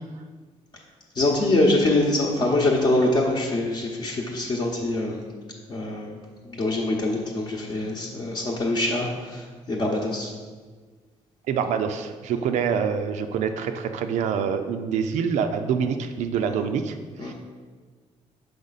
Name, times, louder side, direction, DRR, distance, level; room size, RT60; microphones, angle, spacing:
voice 1, 1.1-5.2 5.7-6.2 6.4-10.3 12.3-12.4 17.2-17.3, left 2 dB, 35° left, -3 dB, 0.8 m, -24 dB
voice 2, 11.5-17.3, right 7 dB, 75° right, 7 dB, 0.4 m, -26 dB
6.3 x 5.1 x 4.0 m, 1.5 s
cardioid pair, 130°, 12 cm